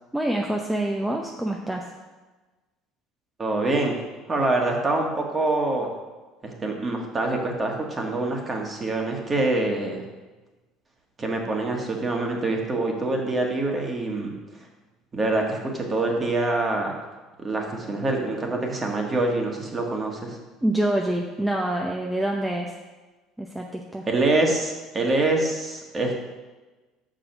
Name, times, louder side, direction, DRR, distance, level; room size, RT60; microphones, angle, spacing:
voice 1, 0.1-1.8 20.6-22.7 23.4-24.1, right 1 dB, 5° right, 0 dB, 0.7 m, -26 dB
voice 2, 3.4-3.9 4.3-5.9 6.4-10.0 11.2-14.3 15.1-16.9 17.4-20.4 24.1-26.3, right 2 dB, 25° right, 1 dB, 1.6 m, -25 dB
6.2 x 5.0 x 6.0 m, 1.2 s
supercardioid pair, 100°, 0 cm